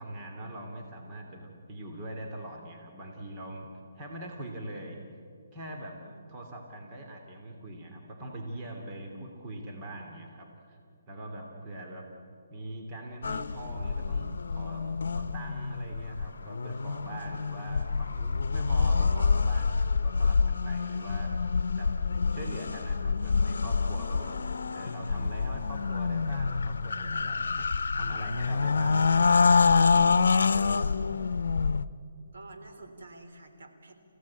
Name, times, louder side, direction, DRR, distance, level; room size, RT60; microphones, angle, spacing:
voice 1, 0.0-3.7 3.9-5.0 5.5-6.0 6.3-10.8 11.1-12.0 12.5-21.9 22.3-24.3 24.7-27.7 27.9-30.2, right 1 dB, 25° right, 1 dB, 2.8 m, -42 dB
sound 1, 13.2-31.8, left 4 dB, 80° left, 0.8 m, -27 dB
voice 2, 32.3-33.9, right 2 dB, 70° right, 4 dB, 3.7 m, -49 dB
29.5 x 16.0 x 8.7 m, 2.5 s
hypercardioid pair, 155°, 0 cm